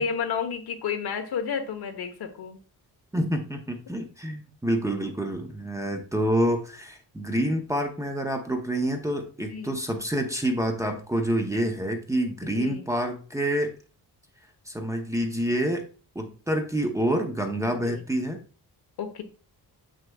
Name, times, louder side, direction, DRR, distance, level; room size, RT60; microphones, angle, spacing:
voice 1, 0.0-2.6 9.5-9.7 12.4-12.8 17.8-18.0 19.0-19.2, left 6 dB, 75° left, 6 dB, 1.1 m, -31 dB
voice 2, 3.1-13.8 14.7-15.8 16.1-18.4, right 1 dB, 10° right, 3 dB, 0.6 m, -27 dB
7.3 x 6.4 x 2.3 m, 0.37 s
wide cardioid pair, 175°, 39 cm